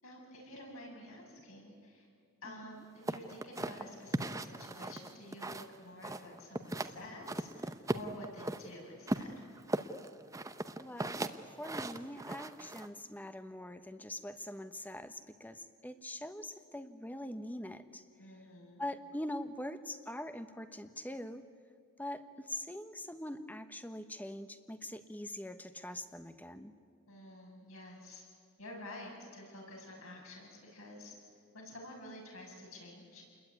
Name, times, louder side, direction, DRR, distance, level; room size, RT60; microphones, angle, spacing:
voice 1, 0.0-2.1 2.4-9.5 18.2-18.8 27.1-28.2 28.6-31.1 31.5-33.2, left 1 dB, 70° left, -1 dB, 7.7 m, -50 dB
voice 2, 2.4-2.8 10.8-11.3 11.6-18.1 18.8-21.4 22.0-26.7, left 1 dB, 10° left, 10 dB, 1.1 m, -43 dB
sound 1, 3.1-5.7 6.0-6.9 7.3-8.6 9.1-12.9, right 1 dB, 15° right, 0.9 m, -37 dB
29.0 x 21.5 x 9.6 m, 2.3 s
head